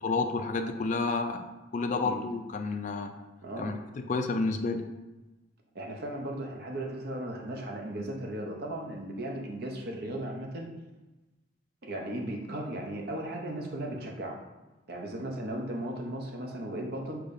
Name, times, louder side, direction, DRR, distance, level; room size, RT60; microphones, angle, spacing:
voice 1, 0.0-1.4 1.7-3.1 3.6-3.8 4.1-4.9, left 3 dB, 40° left, 6 dB, 0.3 m, -30 dB
voice 2, 3.4-3.7 5.7-10.7 11.8-14.4 14.9-17.2, right 1 dB, 50° right, 1 dB, 0.7 m, -36 dB
6.5 x 3.0 x 2.6 m, 1.1 s
head